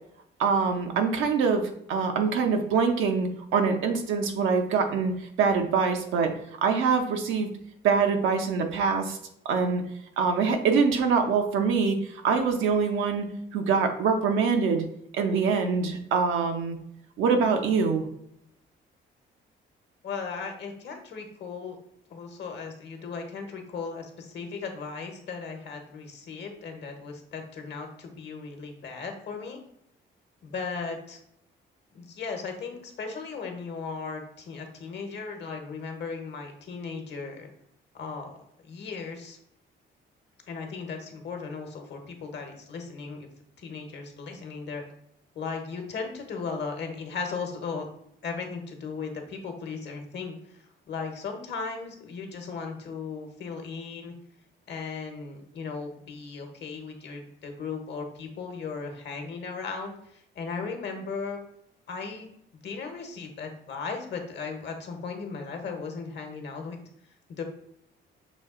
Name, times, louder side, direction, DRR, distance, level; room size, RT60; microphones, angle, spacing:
voice 1, 0.4-6.3 6.6-7.5 7.8-9.2 9.4-9.8 10.2-12.0 12.2-13.3 13.5-14.8 15.1-16.8 17.2-18.1, right 5 dB, 85° right, 4 dB, 0.8 m, -24 dB
voice 2, 20.0-21.8 22.1-29.6 30.4-31.2 31.9-37.5 37.9-38.3 38.6-39.4 40.5-43.3 43.6-44.8 45.3-47.9 48.2-54.1 54.7-61.4 61.9-62.3 62.6-66.8 67.3-67.4, left 5 dB, 60° left, 4 dB, 1.0 m, -36 dB
6.1 x 2.4 x 3.7 m, 0.75 s
cardioid pair, 90°, 20 cm